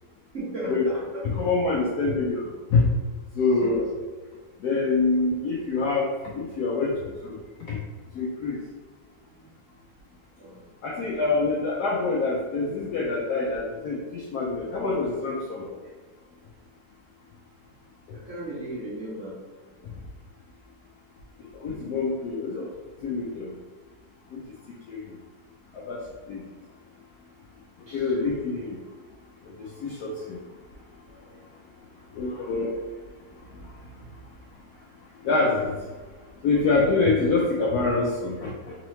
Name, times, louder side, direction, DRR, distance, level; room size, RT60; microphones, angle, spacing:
voice 1, 0.3-1.2 3.4-3.8 9.4-9.5 10.4-10.6 15.6-15.7 18.2-19.3 19.8-20.0 27.9-28.0 31.1-31.2, equal, 45° right, -8 dB, 1.3 m, -36 dB
voice 2, 1.2-2.4 2.7-2.8 3.4-3.9 4.6-6.9 7.2-7.4 7.7-7.8 8.1-8.6 10.8-15.6 21.6-22.7 23.0-23.6 24.3-24.4 24.9-25.0 25.9-26.0 26.3-26.4 27.9-28.8 29.8-30.4 32.2-32.7 35.2-35.7 36.4-38.8, left 3 dB, 90° left, -2 dB, 0.8 m, -25 dB
3.7 x 3.1 x 3.0 m, 1.3 s
omnidirectional pair, 2.2 m